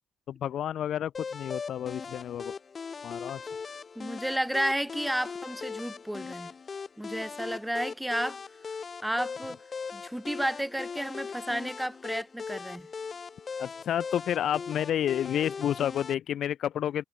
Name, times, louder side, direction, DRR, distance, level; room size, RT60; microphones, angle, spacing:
voice 1, 0.3-2.5 3.0-3.4 13.6-17.0, left 10 dB, 60° left, 0.4 m, -30 dB
sound 1, 1.1-16.1, left 5 dB, 40° left, 1.4 m, -39 dB
voice 2, 4.0-6.5 7.0-8.4 9.0-9.6 9.9-12.9, right 1 dB, 5° right, 0.5 m, -32 dB
hypercardioid pair, 55°, 0 cm